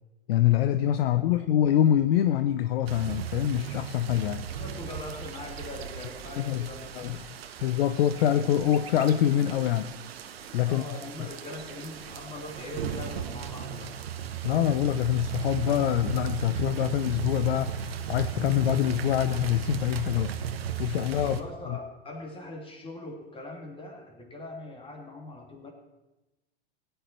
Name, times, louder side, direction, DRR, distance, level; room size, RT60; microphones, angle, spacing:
voice 1, 0.3-4.5 6.4-6.7 6.9-7.2 7.6-9.9 10.5-10.8 14.4-20.3 20.8-21.4 21.7-21.8, left 11 dB, 75° left, 11 dB, 0.7 m, -25 dB
voice 2, 1.0-1.4 4.5-7.3 8.1-8.3 10.7-14.0 21.2-25.7, left 1 dB, 15° left, 2 dB, 2.6 m, -41 dB
sound 1, 2.9-21.4, right 8 dB, 85° right, 1.2 m, -36 dB
16.5 x 10.5 x 4.4 m, 1.0 s
hypercardioid pair, 115°, 30 cm